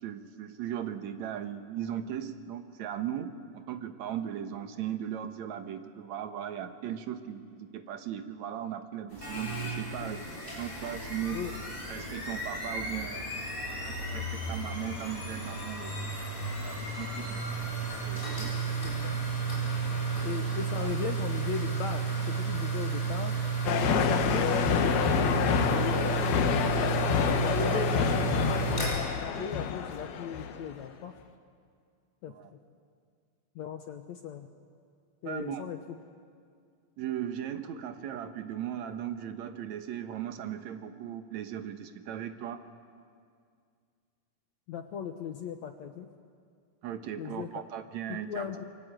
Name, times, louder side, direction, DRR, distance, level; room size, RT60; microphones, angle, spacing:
voice 1, 0.0-10.2 10.6-11.4 11.9-13.3 13.8-15.9 16.2-17.4 18.1-18.7 20.8-20.9 23.8-24.0 27.7-27.8 29.3-29.5 32.3-32.5 35.3-35.6 37.0-42.6 46.8-48.5, right 10 dB, 60° right, 8 dB, 2.1 m, -38 dB
sound 1, 9.1-28.9, right 4 dB, 15° left, 8.1 m, -33 dB
voice 2, 18.8-19.2 20.3-23.4 23.9-26.8 27.5-28.6 29.4-31.1 32.2-32.3 33.6-34.5 35.2-35.8 44.7-46.1 47.2-47.5 48.1-48.6, left 7 dB, 65° left, 6 dB, 1.9 m, -37 dB
sound 2, 23.7-30.7, left 8 dB, 90° left, 3.2 m, -28 dB
27.5 x 23.5 x 9.1 m, 2.2 s
omnidirectional pair, 4.2 m